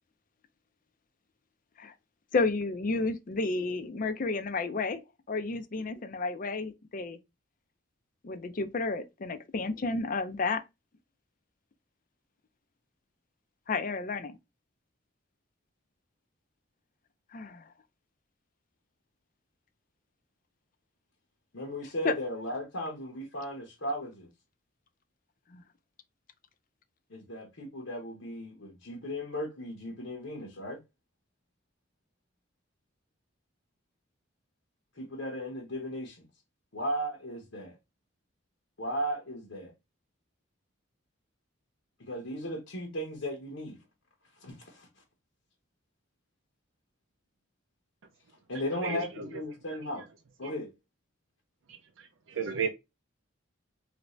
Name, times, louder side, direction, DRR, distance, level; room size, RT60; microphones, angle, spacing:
voice 1, 2.3-5.0 5.3-7.2 8.2-10.6 13.7-14.3 17.3-17.6 22.0-22.1, left 3 dB, 40° left, 0.4 m, -31 dB
voice 2, 21.5-24.3 27.1-30.8 35.0-36.3 36.7-37.7 38.8-39.7 42.0-43.8 44.4-44.9 48.5-50.1 50.4-50.7, equal, 75° left, 0.9 m, -36 dB
voice 3, 48.8-49.3 50.4-50.5 51.7-52.7, right 6 dB, 75° right, 0.5 m, -34 dB
3.2 x 2.6 x 3.1 m
head